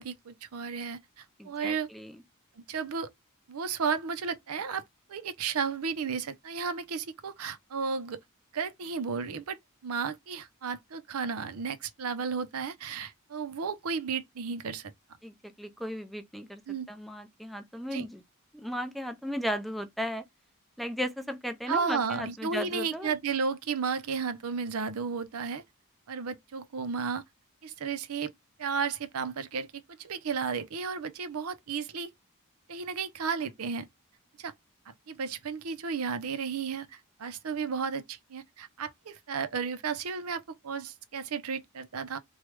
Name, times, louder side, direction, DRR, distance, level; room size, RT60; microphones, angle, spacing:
voice 1, 0.0-1.9 2.7-3.1 3.5-4.8 5.1-8.2 8.5-9.6 9.8-14.9 16.7-16.9 17.9-18.0 21.7-25.6 26.1-27.2 27.6-28.3 28.6-32.1 32.7-33.9 34.4-34.5 34.9-42.2, right 5 dB, 85° right, 0.6 m, -33 dB
voice 2, 1.4-2.1 15.2-16.6 16.9-18.2 18.5-20.2 20.8-23.1, equal, ahead, 0.4 m, -35 dB
3.2 x 2.3 x 3.1 m
head